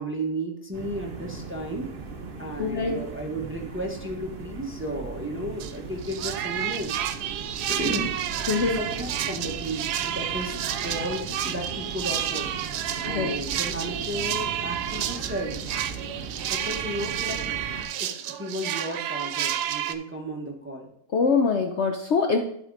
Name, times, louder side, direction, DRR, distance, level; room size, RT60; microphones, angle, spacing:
voice 1, 0.0-1.9 2.4-7.0 7.7-8.1 8.7-10.5 10.8-15.6 16.5-17.4 18.0-20.9, right 1 dB, 10° right, 1 dB, 0.9 m, -33 dB
sound 1, 0.7-17.8, right 4 dB, 40° right, 1.0 m, -39 dB
voice 2, 2.6-3.0 8.5-8.8 13.1-13.3 21.1-22.4, left 5 dB, 60° left, 4 dB, 0.8 m, -23 dB
sound 2, 5.6-5.8 6.0-19.9, right 10 dB, 90° right, 1.2 m, -30 dB
12.0 x 4.3 x 3.9 m, 0.70 s
omnidirectional pair, 1.7 m